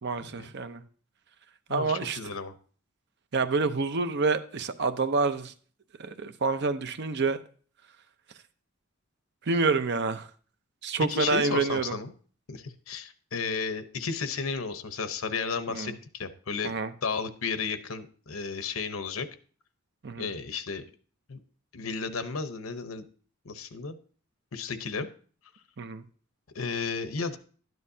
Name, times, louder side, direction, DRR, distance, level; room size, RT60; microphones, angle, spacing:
voice 1, 0.0-0.8 1.7-2.2 3.3-5.5 6.0-7.4 9.5-10.3 10.8-12.0 15.7-15.9 16.6-16.9 20.0-20.3 25.8-26.0, right 4 dB, 55° right, 10 dB, 0.7 m, -28 dB
voice 2, 1.7-2.5 11.1-12.1 12.5-16.7 17.0-19.3 20.2-20.8 21.3-21.4 21.7-23.1 23.4-24.0 24.5-25.1 26.5-27.4, left 5 dB, 90° left, 10 dB, 0.9 m, -33 dB
12.0 x 9.5 x 2.8 m, 0.43 s
head